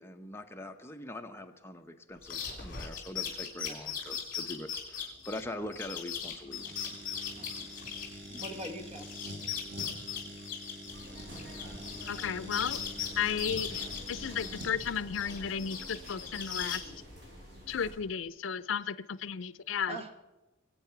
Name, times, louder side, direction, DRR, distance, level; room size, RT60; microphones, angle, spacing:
voice 1, 0.0-6.6, left 1 dB, 15° left, 5 dB, 0.8 m, -43 dB
sound 1, 2.2-8.7 9.0-12.2 12.5-14.9 15.1-16.8, left 8 dB, 45° left, 3.4 m, -38 dB
sound 2, 6.5-14.7, equal, 85° right, 5.0 m, -46 dB
voice 2, 6.6-6.9 7.3-7.7 8.3-9.2 19.8-20.1, right 1 dB, 30° right, 7 dB, 1.4 m, -44 dB
sound 3, 10.9-18.0, equal, 55° right, 6.0 m, -48 dB
voice 3, 12.1-12.8 13.2-16.8 17.7-20.0, left 7 dB, 75° left, 16 dB, 0.5 m, -34 dB
23.0 x 8.5 x 5.9 m, 1.1 s
head